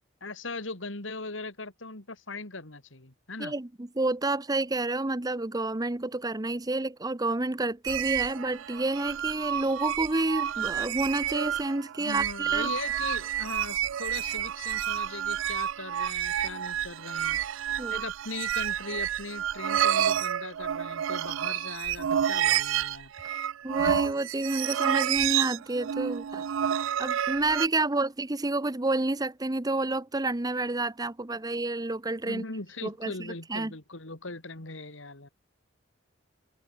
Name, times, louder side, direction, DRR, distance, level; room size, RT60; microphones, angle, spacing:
voice 1, 0.2-3.5 12.0-17.4 17.9-23.1 32.2-35.3, left 3 dB, 75° left, 3.3 m, -39 dB
voice 2, 3.4-12.7 17.8-18.0 23.6-26.5 27.0-32.4 32.8-33.7, right 2 dB, 20° right, 0.8 m, -29 dB
sound 1, 7.8-27.7, right 10 dB, 75° right, 0.4 m, -29 dB
head